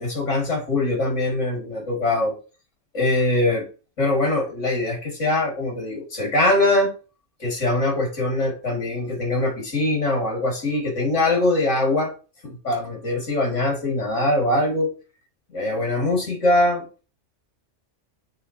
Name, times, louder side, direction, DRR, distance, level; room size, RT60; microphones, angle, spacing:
voice 1, 0.0-2.3 2.9-3.7 4.0-6.9 7.4-12.1 12.4-14.9 15.5-16.8, left 2 dB, 80° left, -1 dB, 2.7 m, -22 dB
9.5 x 3.6 x 2.9 m, 0.34 s
omnidirectional pair, 1.3 m